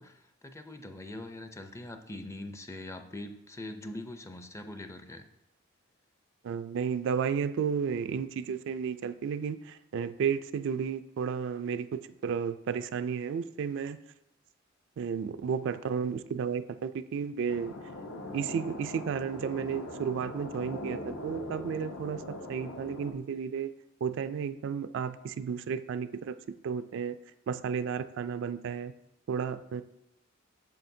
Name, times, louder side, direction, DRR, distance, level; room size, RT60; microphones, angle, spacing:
voice 1, 0.0-5.2, left 1 dB, 15° left, 7 dB, 0.5 m, -42 dB
voice 2, 6.4-14.0 15.0-17.7 18.3-23.7 24.0-26.3 26.6-27.2 27.5-28.9 29.3-29.8, right 6 dB, 60° right, 12 dB, 0.3 m, -33 dB
sound 1, 17.5-23.1, left 1 dB, 65° left, 0.8 m, -41 dB
8.5 x 6.4 x 2.7 m, 0.86 s
head